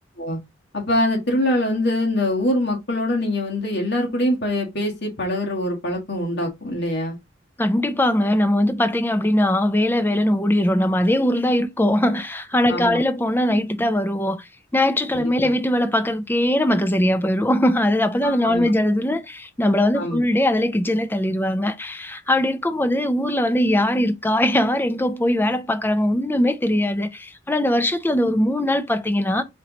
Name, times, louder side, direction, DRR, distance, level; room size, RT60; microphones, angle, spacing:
voice 1, 0.7-7.2 12.7-13.0 15.2-15.6 18.2-18.7 19.9-20.2, left 1 dB, 60° left, 1.5 m, -24 dB
voice 2, 7.6-29.4, left 1 dB, 10° left, 0.5 m, -21 dB
4.5 x 3.0 x 3.8 m
head